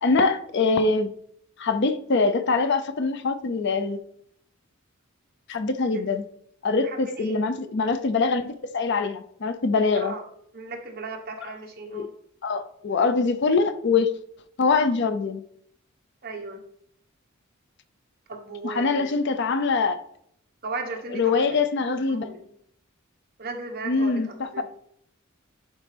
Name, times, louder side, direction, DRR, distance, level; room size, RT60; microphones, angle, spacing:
voice 1, 0.0-1.1 1.6-4.0 5.5-6.2 6.6-10.1 11.4-11.5 11.9-12.1 12.4-14.1 14.6-15.4 18.6-20.0 21.1-22.3 23.8-24.6, left 4 dB, 55° left, 10 dB, 0.5 m, -23 dB
voice 2, 6.8-7.4 9.9-10.2 10.5-12.1 16.2-16.6 18.3-19.1 20.6-21.6 22.1-22.4 23.4-24.2 24.5-24.6, right 3 dB, 45° right, 2 dB, 1.2 m, -36 dB
11.0 x 4.1 x 3.4 m, 0.69 s
head